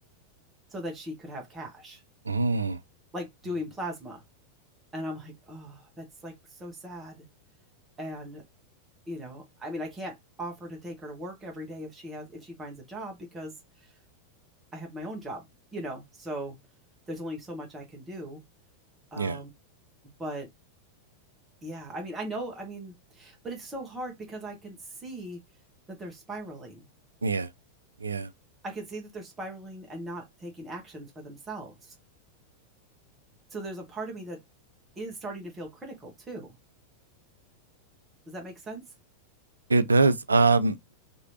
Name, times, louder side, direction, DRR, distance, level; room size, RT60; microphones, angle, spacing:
voice 1, 0.7-2.0 3.1-4.2 4.9-7.3 8.0-8.4 9.1-13.5 14.7-15.4 15.7-16.6 17.1-18.4 19.1-19.5 20.2-20.5 21.6-25.4 25.9-26.8 28.6-31.9 33.5-34.4 35.0-36.6 38.3-38.8, right 1 dB, 15° right, 1.1 m, -38 dB
voice 2, 2.3-2.8 19.2-19.4 27.2-27.5 28.0-28.3 39.7-40.8, right 3 dB, 75° right, 0.3 m, -23 dB
2.9 x 2.6 x 2.8 m
figure-of-eight pair, 90°, 0 cm